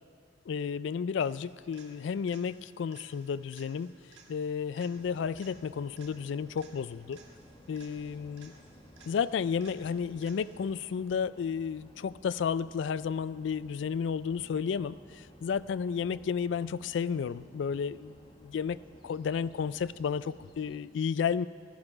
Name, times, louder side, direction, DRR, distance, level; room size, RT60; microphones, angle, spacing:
voice 1, 0.5-3.9 4.3-7.2 7.7-8.5 9.1-18.1 18.4-18.8 19.0-21.5, left 6 dB, 75° left, 17 dB, 0.3 m, -32 dB
sound 1, 1.2-10.8 18.8-18.9, right 4 dB, 70° right, 1.6 m, -59 dB
sound 2, 4.9-20.8, equal, 25° left, 1.3 m, -56 dB
14.5 x 13.0 x 5.0 m, 2.5 s
head